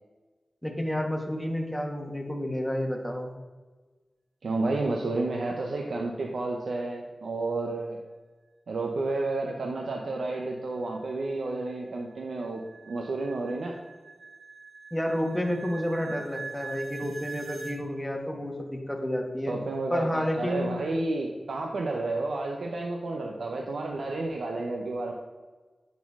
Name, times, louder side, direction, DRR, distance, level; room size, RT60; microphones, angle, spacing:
voice 1, 0.6-3.3 14.9-19.5 19.9-20.8, equal, 5° left, 1 dB, 1.4 m, -30 dB
voice 2, 4.4-8.0 8.7-13.8 19.5-25.1, right 2 dB, 90° right, 1 dB, 0.6 m, -31 dB
sound 1, 10.6-17.8, right 4 dB, 70° right, 1.0 m, -43 dB
10.0 x 4.2 x 3.6 m, 1.3 s
cardioid pair, 55°, 0 cm